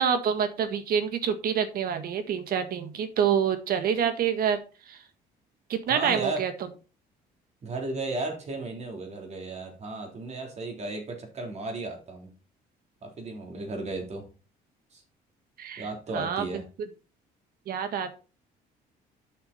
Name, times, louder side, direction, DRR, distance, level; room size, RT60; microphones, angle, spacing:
voice 1, 0.0-4.6 4.9-5.0 5.7-6.5 15.6-15.8 16.1-16.4 17.7-18.2, right 7 dB, 60° right, 9 dB, 1.6 m, -27 dB
voice 2, 5.9-6.5 7.6-12.3 13.0-14.3 14.9-15.0 15.8-16.7, right 2 dB, 40° right, 2 dB, 3.5 m, -34 dB
8.6 x 6.7 x 4.2 m, 0.34 s
cardioid pair, 110°, 17 cm